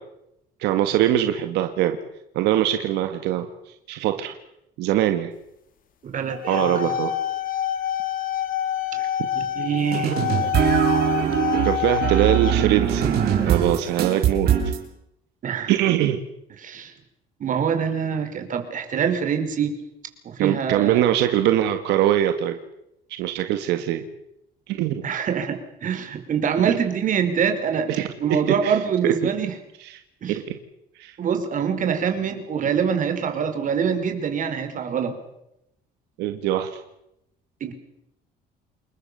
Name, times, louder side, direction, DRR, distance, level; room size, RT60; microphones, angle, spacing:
voice 1, 0.6-2.0 2.3-4.3 4.8-5.3 6.5-7.2 11.6-13.1 13.5-14.5 15.7-16.2 20.4-22.6 23.2-24.0 24.7-25.0 26.6-26.7 27.9-28.1 28.5-28.8 29.0-29.1 29.8-29.9 30.3-30.6 31.0-31.2 36.2-36.8, right 12 dB, 90° right, 7 dB, 1.9 m, -22 dB
voice 2, 6.0-6.9 8.9-9.0 9.3-10.2 15.4-15.7 16.6-16.9 17.4-19.7 20.2-21.0 25.0-27.9 28.2-29.5 30.2-30.4 31.2-35.1 37.6-37.7, right 7 dB, 50° right, 7 dB, 5.2 m, -25 dB
sound 1, 6.3-12.5, left 10 dB, 55° left, 2.8 m, -27 dB
sound 2, 9.9-14.8, right 9 dB, 70° right, 6.7 m, -22 dB
28.5 x 21.5 x 7.0 m, 0.84 s
cardioid pair, 110°, 17 cm